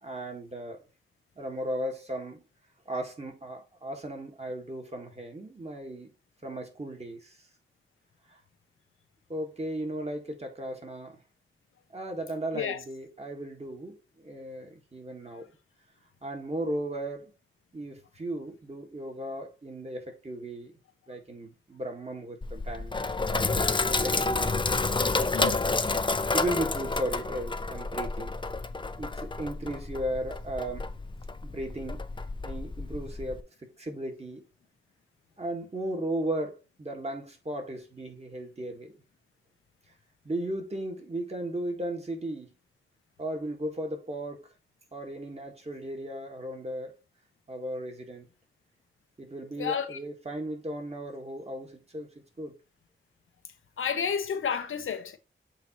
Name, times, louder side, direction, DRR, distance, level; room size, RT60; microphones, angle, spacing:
voice 1, 0.0-0.8 1.4-2.4 2.9-6.1 6.4-7.3 9.3-11.2 11.9-15.5 16.2-17.3 17.7-20.7 21.1-24.5 24.9-25.6 26.3-28.3 29.0-30.9 31.4-32.0 32.4-34.4 35.4-39.0 40.3-42.5 43.2-44.4 44.9-46.9 47.5-48.3 49.2-52.1 52.4-52.5, right 1 dB, 30° right, 1.9 m, -36 dB
Sink (filling or washing), 22.4-33.4, left 3 dB, 25° left, 0.5 m, -30 dB
voice 2, 49.6-50.0 53.8-55.2, left 7 dB, 90° left, 0.8 m, -30 dB
7.6 x 2.8 x 4.3 m
cardioid pair, 70°, 20 cm